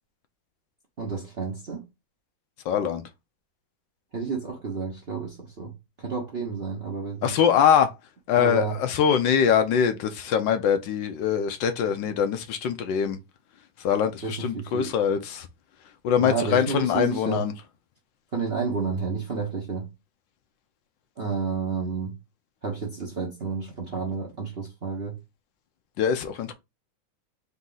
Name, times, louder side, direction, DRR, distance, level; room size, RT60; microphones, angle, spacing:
voice 1, 1.0-1.8 4.1-5.7 6.0-7.4 8.4-8.8 14.2-14.9 16.2-17.4 18.3-19.9 21.2-22.1 22.6-25.2, right 5 dB, 45° right, 0.8 m, -30 dB
voice 2, 2.6-3.0 7.2-7.9 8.3-13.2 13.8-15.5 16.0-17.5 26.0-26.5, left 8 dB, 75° left, 1.3 m, -23 dB
4.1 x 2.8 x 3.8 m
omnidirectional pair, 2.2 m